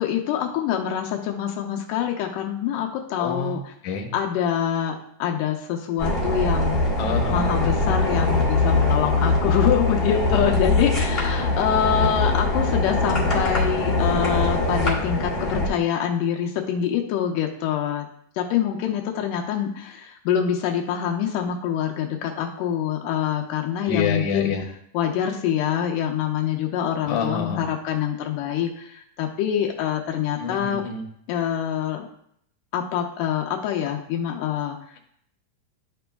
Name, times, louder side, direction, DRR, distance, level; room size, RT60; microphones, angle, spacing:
voice 1, 0.0-3.6 4.1-6.8 7.3-18.1 18.4-24.5 24.9-30.8 31.3-32.1 32.7-34.8, left 9 dB, 85° left, 1 dB, 2.3 m, -25 dB
voice 2, 3.2-4.2 7.0-7.5 10.1-10.8 11.4-11.5 23.9-24.7 27.1-27.7 30.4-31.1, left 5 dB, 70° left, 1 dB, 2.3 m, -28 dB
sound 1, 6.0-15.7, left 2 dB, 20° left, 1.8 m, -22 dB
12.5 x 5.1 x 2.3 m, 0.70 s
omnidirectional pair, 3.7 m